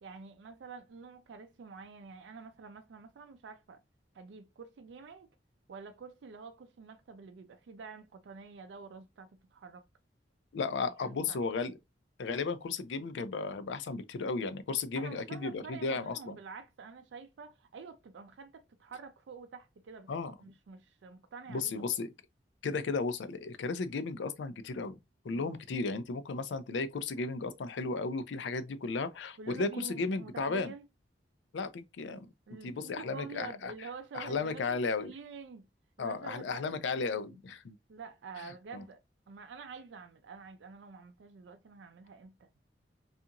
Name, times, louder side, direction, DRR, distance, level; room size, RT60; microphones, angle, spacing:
voice 1, 0.0-3.8 4.1-5.3 5.7-9.9 10.8-11.4 15.0-20.1 20.4-21.9 25.3-25.5 29.4-30.8 32.5-35.7 36.0-37.4 37.9-39.0 39.3-42.5, right 5 dB, 80° right, 0.4 m, -48 dB
voice 2, 10.5-11.7 12.2-16.4 20.1-20.3 21.5-22.1 22.6-25.0 25.2-30.7 31.5-32.3 32.6-33.7 34.1-35.1 36.0-37.8 38.4-38.8, left 4 dB, 85° left, 0.4 m, -34 dB
2.8 x 2.4 x 2.4 m
head